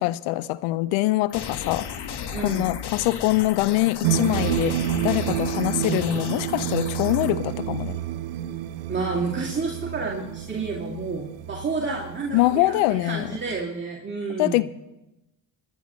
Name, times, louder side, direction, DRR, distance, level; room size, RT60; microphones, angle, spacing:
voice 1, 0.0-1.9 2.4-4.8 5.0-8.0 12.3-13.3 14.4-14.6, left 17 dB, 80° left, 0.7 m, -23 dB
sound 1, 1.3-7.3, left 7 dB, 55° left, 1.5 m, -35 dB
voice 2, 2.3-2.7 8.9-12.8 13.0-14.6, right 4 dB, 25° right, 2.5 m, -30 dB
sound 2, 4.0-13.6, right 11 dB, 80° right, 1.0 m, -29 dB
21.5 x 11.5 x 3.1 m
hypercardioid pair, 60°, 48 cm